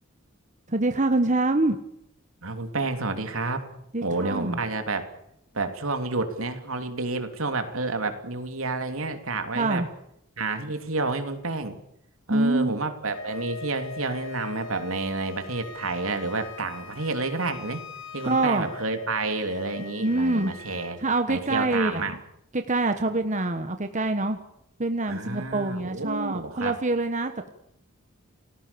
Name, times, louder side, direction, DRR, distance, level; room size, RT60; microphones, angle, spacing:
voice 1, 0.7-1.8 3.9-4.6 9.5-9.9 12.3-12.7 18.2-18.7 20.0-20.5 21.0-22.1 22.5-24.4 24.8-27.5, right 2 dB, 35° right, 7 dB, 1.5 m, -25 dB
voice 2, 2.4-3.7 4.0-5.1 5.5-9.8 10.4-11.8 12.3-17.8 18.1-21.0 21.3-22.2 25.1-26.7, right 3 dB, 75° right, 7 dB, 3.1 m, -30 dB
Wind instrument woodwind instrument, 13.1-21.0, left 4 dB, 65° left, 3.8 m, -41 dB
29.5 x 19.0 x 7.1 m, 0.77 s
head